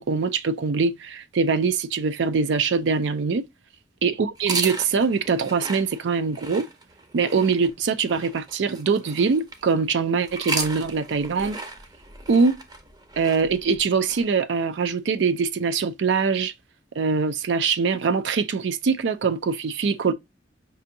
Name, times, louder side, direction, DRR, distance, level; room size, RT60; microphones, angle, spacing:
voice 1, 0.0-3.5 4.0-6.7 7.1-11.6 12.3-12.6 13.2-16.5 17.0-20.1, right 5 dB, 70° right, 0.4 m, -23 dB
sound 1, 4.3-9.7 10.2-14.2, right 3 dB, 20° right, 0.6 m, -35 dB
5.4 x 2.6 x 2.6 m
head